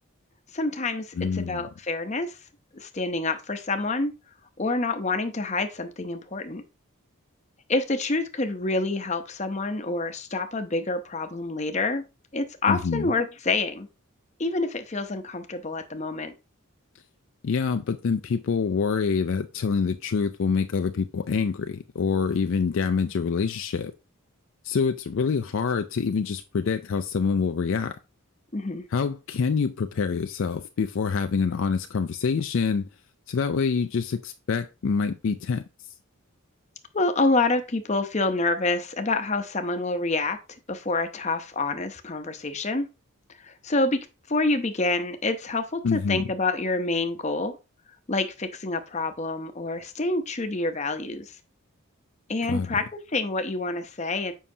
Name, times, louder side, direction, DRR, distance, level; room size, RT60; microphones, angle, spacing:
voice 1, 0.5-2.4 2.7-4.1 4.6-6.6 7.7-12.0 12.3-13.9 14.4-16.3 28.5-28.8 36.9-40.4 40.7-42.9 43.4-44.0 44.3-47.6 48.1-51.3 52.3-54.3, left 3 dB, 30° left, 0.7 m, -27 dB
voice 2, 1.1-1.7 12.7-13.1 17.4-23.9 24.6-28.0 28.9-32.9 33.3-35.6 45.8-46.2 52.5-52.7, left 5 dB, 60° left, 0.4 m, -26 dB
7.3 x 5.5 x 2.7 m
head